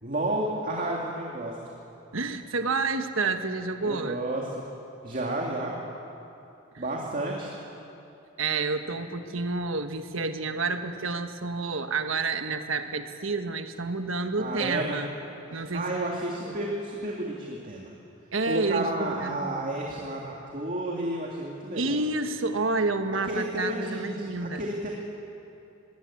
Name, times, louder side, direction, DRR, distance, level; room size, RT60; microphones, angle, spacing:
voice 1, 0.0-1.6 3.8-4.5 5.0-5.7 6.8-7.5 14.4-15.0 15.5-17.9 18.5-22.0 23.2-24.9, right 1 dB, 40° right, -2 dB, 2.2 m, -31 dB
voice 2, 2.1-4.2 8.4-15.1 15.5-15.9 16.4-16.6 18.3-19.5 21.7-24.6, right 3 dB, 70° right, 7 dB, 1.4 m, -29 dB
21.0 x 18.0 x 8.5 m, 2.8 s
head